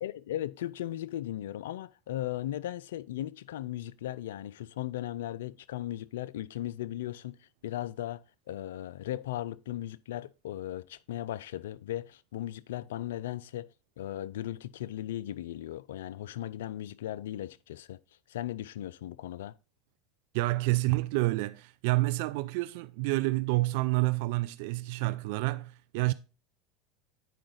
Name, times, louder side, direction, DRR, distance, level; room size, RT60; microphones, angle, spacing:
voice 1, 0.0-13.7 14.0-18.0 18.3-19.5, left 13 dB, 75° left, 0.3 m, -37 dB
voice 2, 20.3-26.1, right 21 dB, 65° right, 0.3 m, -28 dB
9.3 x 4.8 x 3.9 m
hypercardioid pair, 85°, 0 cm